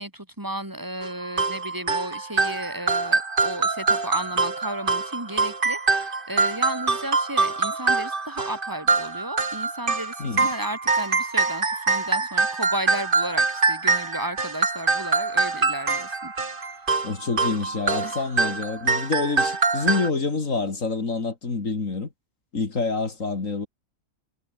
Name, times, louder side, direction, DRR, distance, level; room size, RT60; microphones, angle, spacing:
voice 1, 0.0-16.3 16.6-16.8 18.0-18.2, right 1 dB, 15° right, 3.2 m, -34 dB
sound 1, 1.0-20.1, right 3 dB, 35° right, 2.1 m, -24 dB
voice 2, 17.0-22.1 22.5-23.7, left 3 dB, 65° left, 3.1 m, -27 dB
omnidirectional pair, 1.5 m